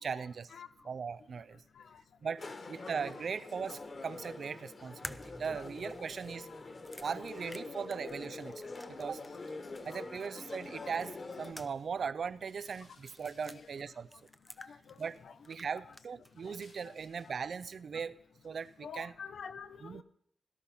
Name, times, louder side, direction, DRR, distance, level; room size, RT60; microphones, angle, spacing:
voice 1, 0.0-0.5 0.8-1.6 2.2-6.5 7.0-9.2 9.8-14.1 15.0-15.2 15.5-18.2 18.4-19.1 19.8-20.0, right 6 dB, 55° right, 16 dB, 0.6 m, -39 dB
sound 1, 2.4-11.5, left 3 dB, 35° left, 1.6 m, -45 dB
voice 2, 2.8-3.2 5.5-5.6 9.9-10.0 10.8-11.0 13.5-13.7 14.6-14.9 15.2-15.4 15.8-15.9 16.5-16.6 16.8-16.9 17.2-17.3 18.8-20.0, left 6 dB, 70° left, 12 dB, 0.9 m, -48 dB
sound 2, 5.0-9.5 9.8-9.9 11.0-12.0 12.3-12.4 13.1-13.6 14.1-15.2 15.4-16.3, equal, ahead, 0.5 m, -50 dB
sound 3, 8.8-12.0 12.3-18.0 18.4-18.8, left 3 dB, 90° left, 7.4 m, -67 dB
17.5 x 12.5 x 5.6 m, 0.67 s
wide cardioid pair, 160°, 0 cm